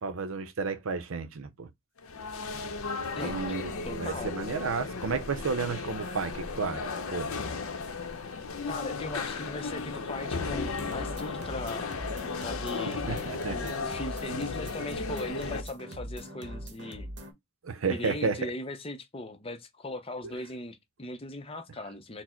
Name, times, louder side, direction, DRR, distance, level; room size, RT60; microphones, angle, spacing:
voice 1, 0.0-1.7 3.2-6.8 7.1-7.3 13.1-13.7 17.6-18.5, right 4 dB, 80° right, 0.6 m, -32 dB
sound 1, 2.0-15.6, left 4 dB, 85° left, 0.7 m, -35 dB
voice 2, 3.8-4.3 8.7-11.9 12.4-13.1 13.5-17.1 17.9-22.2, left 2 dB, 25° left, 0.5 m, -39 dB
sound 2, 10.8-17.3, equal, 55° right, 1.0 m, -42 dB
4.3 x 2.0 x 4.3 m
head